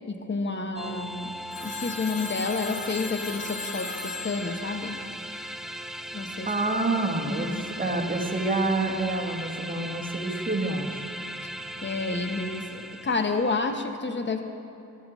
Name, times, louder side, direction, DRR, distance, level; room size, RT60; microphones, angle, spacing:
voice 1, 0.1-5.0 6.1-6.5 7.3-7.6 11.4-11.5 11.8-14.4, left 3 dB, 35° left, 6 dB, 1.0 m, -30 dB
sound 1, 0.8-13.8, equal, ahead, 0.5 m, -38 dB
Telephone, 1.5-5.8, left 5 dB, 85° left, 1.2 m, -38 dB
voice 2, 6.4-11.1, right 2 dB, 25° right, 1 dB, 1.5 m, -28 dB
14.5 x 11.0 x 3.1 m, 2.9 s
cardioid pair, 60°, 35 cm